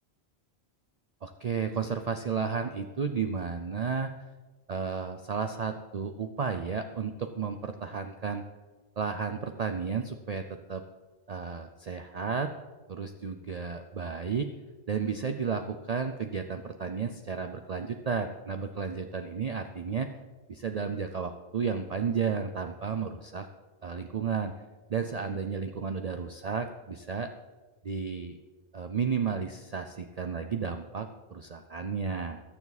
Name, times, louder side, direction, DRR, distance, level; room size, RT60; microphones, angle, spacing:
voice 1, 1.2-4.1 4.7-8.4 9.0-10.8 11.3-12.5 12.9-14.5 14.9-20.1 20.5-23.5 23.8-24.5 24.9-27.3 27.8-28.4 28.7-32.4, right 6 dB, 45° right, 7 dB, 0.6 m, -32 dB
21.0 x 7.1 x 4.1 m, 1.3 s
omnidirectional pair, 1.1 m